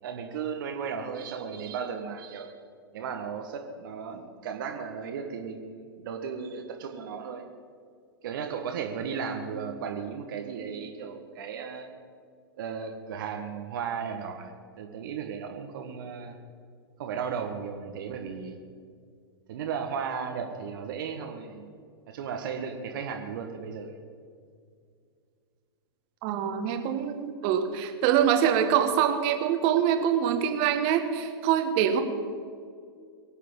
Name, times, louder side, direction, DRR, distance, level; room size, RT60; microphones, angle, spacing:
voice 1, 0.0-2.5 2.9-7.4 8.2-11.9 12.6-16.4 17.0-18.6 19.5-21.7 22.1-23.9, right 6 dB, 55° right, 4 dB, 1.6 m, -35 dB
voice 2, 26.2-32.0, right 9 dB, 40° right, 7 dB, 1.7 m, -24 dB
24.0 x 8.4 x 5.5 m, 2.2 s
figure-of-eight pair, 105°, 13 cm